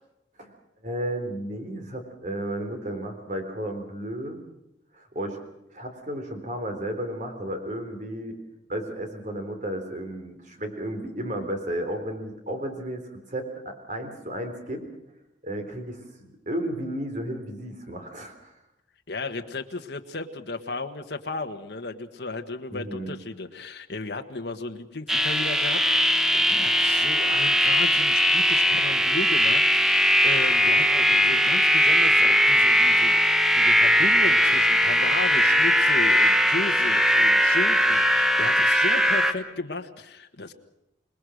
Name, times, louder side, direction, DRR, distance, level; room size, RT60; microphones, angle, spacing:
voice 1, 0.8-4.4 4.9-5.4 5.7-8.4 8.7-14.8 15.4-18.5 22.7-23.2, right 1 dB, 40° right, 5 dB, 3.8 m, -33 dB
voice 2, 19.1-40.5, left 3 dB, 60° left, 5 dB, 1.5 m, -35 dB
sound 1, 25.1-39.3, equal, ahead, 1.1 m, -20 dB
27.5 x 20.0 x 6.5 m, 0.87 s
head